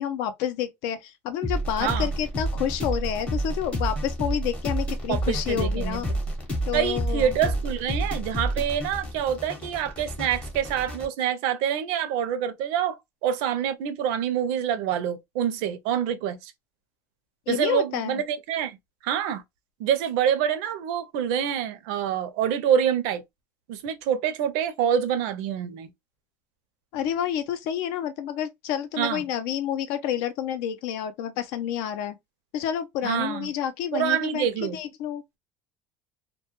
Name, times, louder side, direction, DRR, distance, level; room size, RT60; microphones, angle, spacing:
voice 1, 0.0-6.1 6.7-7.4 17.5-18.2 26.9-32.2 32.5-35.2, left 10 dB, 75° left, 0.5 m, -29 dB
sound 1, 1.4-11.1, right 1 dB, 15° left, 0.7 m, -29 dB
voice 2, 5.1-6.0 6.7-16.5 17.5-18.8 19.0-19.4 19.8-23.2 23.7-25.9 29.0-29.2 33.0-33.5 33.9-34.8, right 9 dB, 75° right, 0.5 m, -26 dB
2.2 x 2.1 x 2.9 m
cardioid pair, 170°, 7 cm